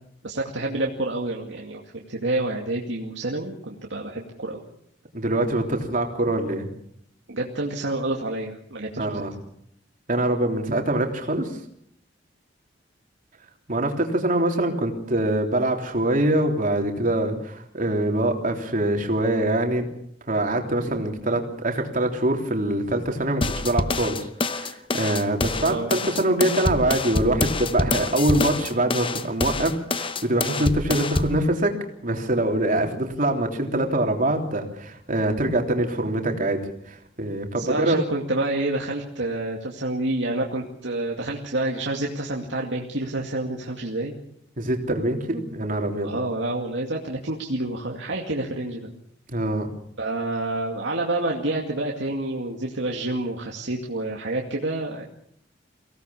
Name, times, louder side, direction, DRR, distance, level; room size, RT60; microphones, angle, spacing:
voice 1, 0.2-4.6 7.3-9.2 25.6-25.9 37.6-44.1 46.0-48.9 50.0-55.0, right 2 dB, 90° right, -1 dB, 2.4 m, -28 dB
voice 2, 5.1-6.7 9.0-9.3 10.1-11.5 13.7-19.9 20.3-31.7 32.0-38.0 44.6-46.1 49.3-49.7, right 1 dB, 45° right, 3 dB, 3.4 m, -24 dB
sound 1, 23.4-31.4, left 3 dB, 30° left, 0.9 m, -26 dB
24.0 x 17.5 x 7.1 m, 0.70 s
head